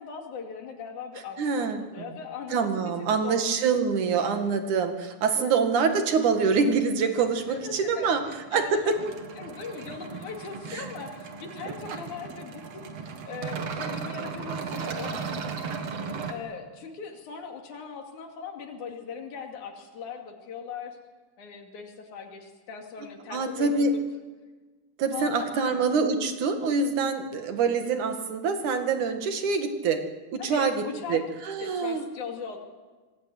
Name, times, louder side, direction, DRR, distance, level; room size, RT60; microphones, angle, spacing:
voice 1, 0.0-3.5 5.3-5.6 7.5-8.9 9.4-12.9 13.3-15.5 16.3-21.0 21.4-24.0 25.1-25.8 30.4-31.2 31.6-32.6, left 6 dB, 85° left, 3 dB, 3.9 m, -39 dB
voice 2, 1.4-1.8 2.5-8.2 8.5-8.9 10.7-10.8 23.3-23.9 25.0-30.0 30.3-30.8 31.1-32.0, right 5 dB, 90° right, 6 dB, 3.4 m, -25 dB
sound 1, 7.2-16.3, right 5 dB, 60° right, 2.9 m, -37 dB
26.0 x 19.5 x 9.5 m, 1.4 s
omnidirectional pair, 3.4 m